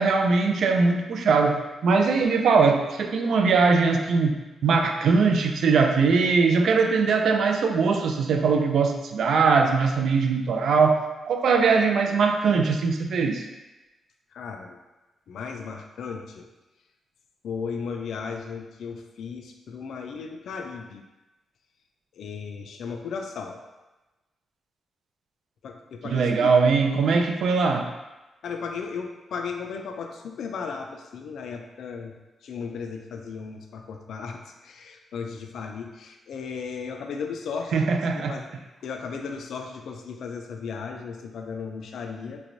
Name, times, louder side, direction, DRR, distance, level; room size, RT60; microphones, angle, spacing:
voice 1, 0.0-4.3 4.6-13.4 26.0-27.9 37.7-38.3, right 4 dB, 65° right, 4 dB, 0.3 m, -21 dB
voice 2, 14.3-14.8 15.3-16.5 17.4-21.1 22.2-23.6 25.6-26.5 28.4-32.1 32.4-38.5 38.8-42.4, left 5 dB, 70° left, 4 dB, 0.3 m, -35 dB
3.2 x 3.1 x 2.6 m, 1.1 s
wide cardioid pair, 160°, 0 cm